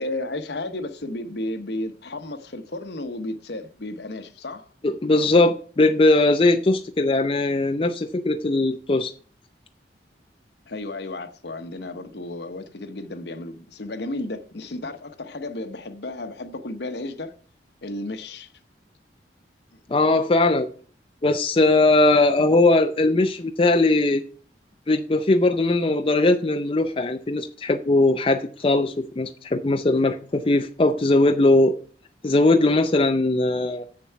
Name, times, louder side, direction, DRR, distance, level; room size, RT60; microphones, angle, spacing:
voice 1, 0.0-4.7 10.7-17.3 17.8-18.5, left 2 dB, 65° left, 1.0 m, -33 dB
voice 2, 4.8-9.1 19.9-20.7 21.2-24.2 24.9-31.8 32.2-33.9, left 2 dB, 30° left, 0.4 m, -20 dB
7.6 x 6.9 x 5.7 m
head